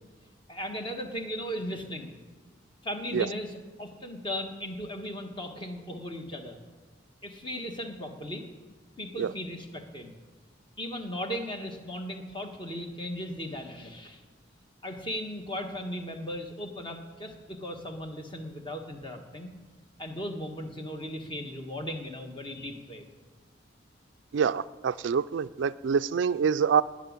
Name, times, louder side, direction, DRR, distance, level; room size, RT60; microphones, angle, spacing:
voice 1, 0.5-2.1 2.8-6.6 7.2-8.4 9.0-10.1 10.8-14.2 14.8-19.5 20.0-23.0, equal, 25° left, 1.4 m, -37 dB
voice 2, 24.3-26.8, right 6 dB, 75° right, 0.4 m, -26 dB
18.5 x 6.2 x 9.6 m
head